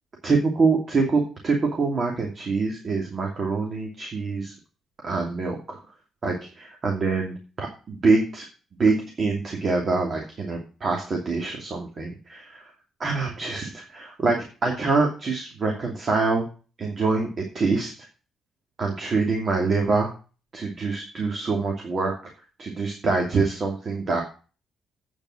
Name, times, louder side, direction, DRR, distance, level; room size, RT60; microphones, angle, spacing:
voice 1, 0.2-4.5 5.0-5.8 6.2-8.5 8.8-12.6 13.0-16.4 16.8-17.9 18.8-20.1 20.5-22.1 22.6-24.2, right 4 dB, 45° right, 1 dB, 2.7 m, -25 dB
8.8 x 7.1 x 6.4 m, 0.36 s
cardioid pair, 90°, 0 cm